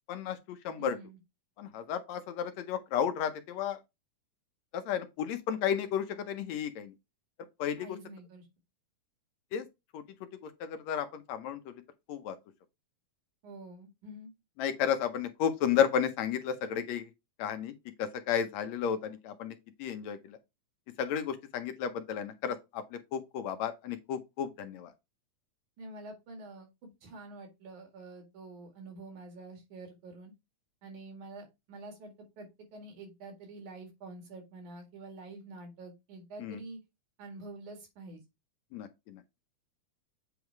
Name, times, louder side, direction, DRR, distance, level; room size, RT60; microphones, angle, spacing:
voice 1, 0.1-1.0 1.6-3.8 4.7-6.9 7.6-8.0 9.5-9.7 9.9-10.0 10.4-11.8 12.1-12.4 14.6-17.1 17.4-17.7 18.0-20.4 21.0-24.9 36.4-36.6 38.7-39.2, left 8 dB, 75° left, 1.9 m, -33 dB
voice 2, 0.8-1.2 7.8-8.5 13.4-14.3 25.8-30.3 30.8-36.8 37.2-38.2, right 2 dB, 80° right, 3.5 m, -47 dB
8.0 x 3.4 x 4.5 m
omnidirectional pair, 3.4 m